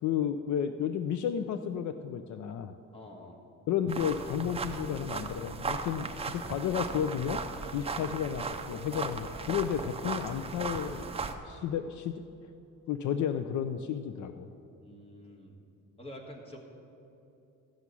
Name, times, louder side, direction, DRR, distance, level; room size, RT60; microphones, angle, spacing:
voice 1, 0.0-2.7 3.7-7.4 7.7-11.1 11.4-12.1 12.9-14.5, left 8 dB, 65° left, 9 dB, 0.5 m, -32 dB
voice 2, 2.9-3.4 7.9-8.1 14.8-15.6 16.0-16.6, left 1 dB, 20° left, 0 dB, 1.6 m, -47 dB
sound 1, 3.9-11.3, right 4 dB, 20° right, 0.5 m, -37 dB
14.0 x 6.1 x 8.4 m, 2.8 s
cardioid pair, 170°, 32 cm